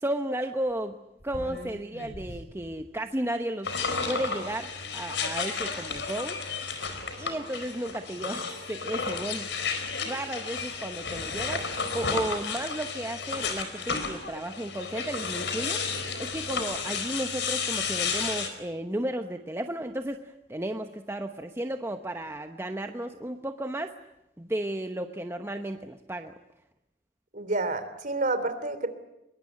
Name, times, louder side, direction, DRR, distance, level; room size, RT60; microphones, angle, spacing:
voice 1, 0.0-1.0 1.2-3.7 4.1-6.4 7.2-9.5 10.0-11.6 11.9-15.8 16.2-23.9 24.4-26.3, right 1 dB, 15° right, 6 dB, 1.0 m, -33 dB
sound 1, 0.7-0.8 1.2-3.0 3.5-3.9 5.2-5.3 6.5-6.9, equal, 70° left, 6.2 m, -43 dB
sound 2, 3.6-18.5, left 5 dB, 85° left, 4.4 m, -32 dB
voice 2, 27.3-28.9, right 2 dB, 50° right, 10 dB, 3.1 m, -29 dB
23.5 x 22.5 x 9.9 m, 0.90 s
head